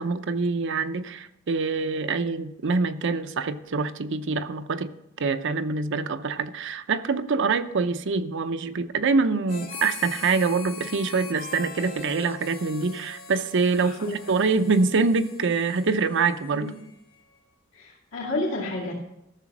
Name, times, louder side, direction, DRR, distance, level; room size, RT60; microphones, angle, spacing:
voice 1, 0.0-4.9 5.2-16.7, right 4 dB, 65° right, 10 dB, 0.6 m, -25 dB
Harmonica, 9.5-17.2, left 4 dB, 50° left, 2.4 m, -42 dB
voice 2, 13.8-14.2 16.5-16.7 17.7-18.9, left 2 dB, 70° left, -4 dB, 2.4 m, -31 dB
13.5 x 6.8 x 6.1 m, 0.85 s
head